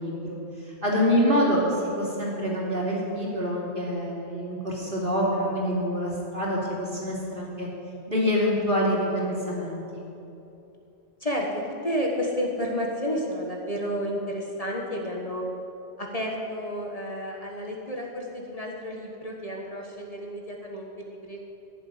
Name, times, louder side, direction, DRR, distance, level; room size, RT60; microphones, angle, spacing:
voice 1, 0.0-7.7 8.1-10.0, equal, 50° right, -5 dB, 3.6 m, -26 dB
voice 2, 11.2-15.4 16.0-21.4, equal, 35° left, -1 dB, 1.6 m, -31 dB
16.5 x 7.1 x 9.7 m, 2.9 s
omnidirectional pair, 1.1 m